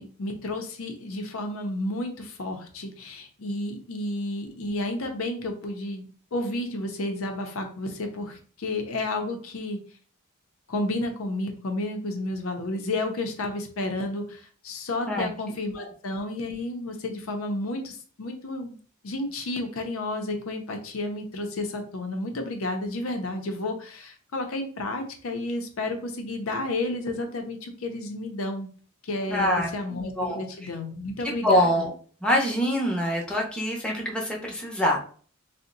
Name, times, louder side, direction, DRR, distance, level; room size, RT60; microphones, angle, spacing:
voice 1, 0.0-6.1 6.3-9.8 10.7-18.8 19.0-28.7 29.0-31.8, left 2 dB, 75° left, 4 dB, 0.6 m, -31 dB
voice 2, 29.3-29.7 30.2-30.4 31.2-31.9 32.2-35.0, left 1 dB, 5° left, -2 dB, 0.6 m, -24 dB
2.6 x 2.1 x 3.8 m, 0.43 s
head